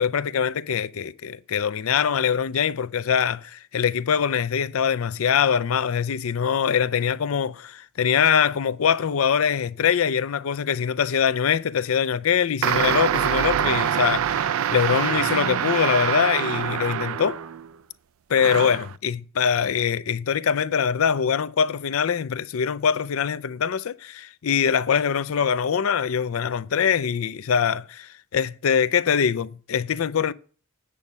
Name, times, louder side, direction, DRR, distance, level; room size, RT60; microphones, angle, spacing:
voice 1, 0.0-17.4 18.3-30.3, left 7 dB, 80° left, 0.5 m, -23 dB
sound 1, 12.6-17.7 18.4-18.9, right 9 dB, 75° right, 0.4 m, -25 dB
8.4 x 5.3 x 7.2 m
head